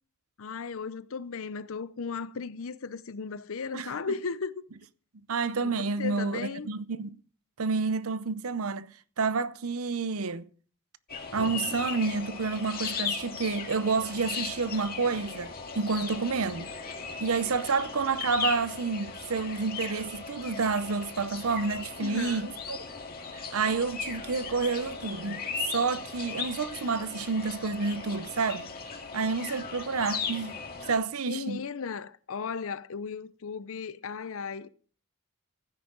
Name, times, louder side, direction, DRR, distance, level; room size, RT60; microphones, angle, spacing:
voice 1, 0.4-4.6 5.6-6.7 22.0-22.5 31.3-34.7, left 5 dB, 70° left, 0.7 m, -36 dB
voice 2, 5.3-7.2 7.6-8.9 9.2-10.5 11.3-16.7 17.2-22.8 23.5-25.4 25.7-28.7 29.1-30.6 30.9-31.6, right 4 dB, 75° right, 0.7 m, -29 dB
sound 1, 11.1-31.0, left 5 dB, 45° left, 2.2 m, -37 dB
15.5 x 9.7 x 3.9 m
head